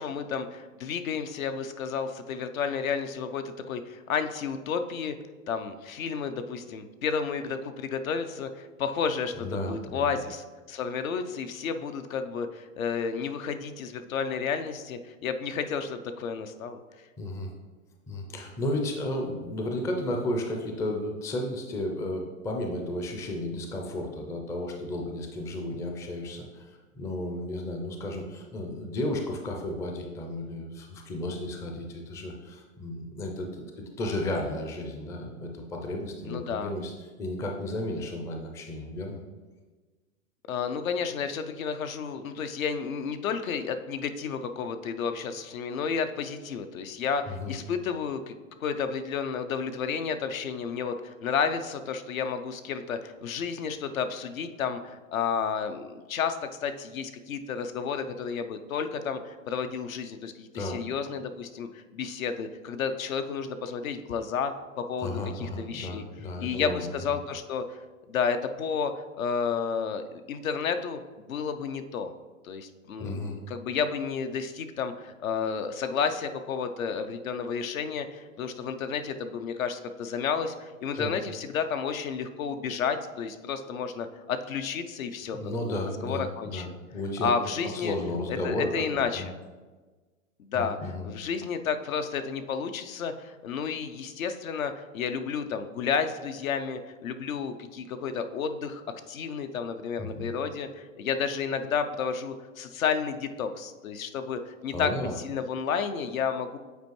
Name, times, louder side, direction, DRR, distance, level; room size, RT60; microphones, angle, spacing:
voice 1, 0.0-5.1 5.5-16.8 36.2-36.7 40.5-48.3 48.6-66.0 66.4-67.8 68.1-72.1 72.4-86.7 87.2-88.0 88.4-89.2 90.4-104.9 105.2-106.6, left 6 dB, 75° left, 8 dB, 0.7 m, -31 dB
voice 2, 9.4-10.1 17.2-17.5 18.1-33.6 34.0-36.9 37.2-39.2 47.3-47.5 60.5-60.8 65.0-66.8 73.0-73.4 81.0-81.1 85.3-87.3 87.7-89.3 90.5-91.1 100.0-100.3 104.7-105.1, left 1 dB, 10° left, 2 dB, 0.4 m, -33 dB
8.2 x 4.4 x 3.1 m, 1.3 s
hypercardioid pair, 110°, 41 cm